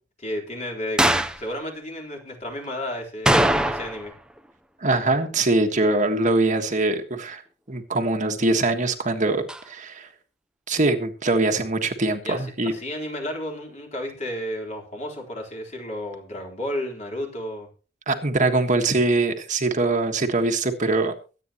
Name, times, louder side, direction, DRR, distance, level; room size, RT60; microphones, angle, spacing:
voice 1, 0.2-4.1 12.2-17.7, left 1 dB, 35° left, 1 dB, 3.9 m, -32 dB
sound 1, 1.0-1.4 3.3-4.1 4.4-4.5 9.5-9.6, right 1 dB, 5° right, 0.7 m, -21 dB
voice 2, 4.8-7.4 7.7-10.1 10.7-12.7 18.1-21.1, right 2 dB, 40° right, 5 dB, 1.5 m, -23 dB
23.5 x 9.1 x 3.0 m, 0.35 s
head